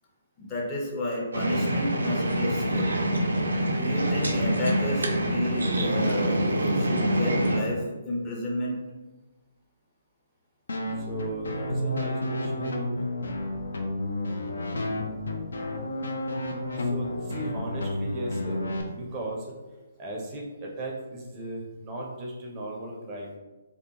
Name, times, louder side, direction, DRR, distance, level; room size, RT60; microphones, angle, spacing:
voice 1, 0.4-2.9 3.8-8.8 19.1-19.3, left 1 dB, 25° left, -4 dB, 0.6 m, -32 dB
sound 1, 1.3-7.6, right 1 dB, 85° right, 0.4 m, -25 dB
sound 2, 10.7-18.8, left 1 dB, 75° left, 0.4 m, -31 dB
voice 2, 11.0-12.9 16.7-18.6 18.9-19.5 20.0-23.3, right 1 dB, 25° right, -2 dB, 0.5 m, -36 dB
2.3 x 2.2 x 2.8 m, 1.2 s
figure-of-eight pair, 140°, 0 cm